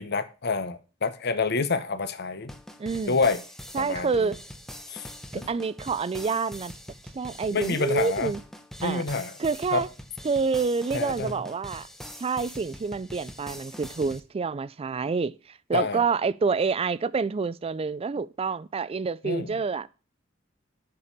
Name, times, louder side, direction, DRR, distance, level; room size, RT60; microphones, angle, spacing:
voice 1, 0.0-2.5 3.1-3.4 3.8-4.3 4.9-5.1 5.3-5.5 7.5-8.3 8.8-9.3 9.7-9.8 10.9-11.3 15.7-16.0 19.2-19.6, left 4 dB, 55° left, 0.9 m, -28 dB
sound 1, 2.5-14.2, equal, ahead, 0.8 m, -43 dB
voice 2, 2.8-3.2 3.7-4.4 5.3-6.7 7.1-8.4 8.8-9.0 9.4-9.9 10.2-11.9 12.2-19.9, right 4 dB, 30° right, 0.3 m, -28 dB
6.8 x 5.2 x 7.1 m
head